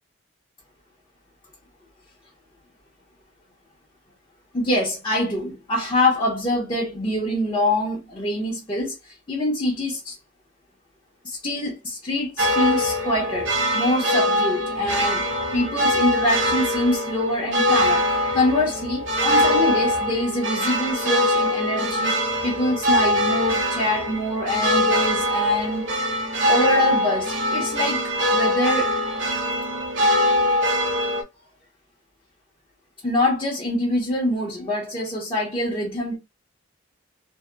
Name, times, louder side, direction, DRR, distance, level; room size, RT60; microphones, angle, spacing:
voice 1, 4.5-10.2 11.2-15.2 15.5-25.9 26.5-28.9 30.2-30.6 33.0-36.2, left 1 dB, 25° left, 0.6 m, -25 dB
sound 1, 12.4-31.2, left 1 dB, 75° right, 0.7 m, -22 dB
2.7 x 2.1 x 2.2 m
head